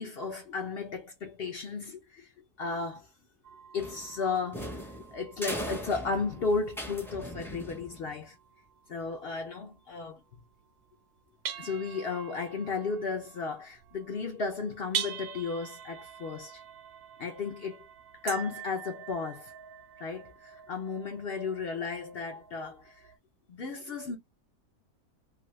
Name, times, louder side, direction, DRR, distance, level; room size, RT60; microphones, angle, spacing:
voice 1, 0.0-2.3 2.6-3.1 3.7-8.4 8.9-10.2 11.6-16.6 17.2-17.9 18.2-19.5 20.0-23.1 23.5-24.2, left 4 dB, 65° left, 0.6 m, -34 dB
sound 1, 3.4-11.0 11.5-23.2, right 9 dB, 85° right, 1.1 m, -45 dB
sound 2, 3.8-8.2, equal, 5° left, 0.3 m, -40 dB
2.6 x 2.6 x 3.0 m
omnidirectional pair, 1.6 m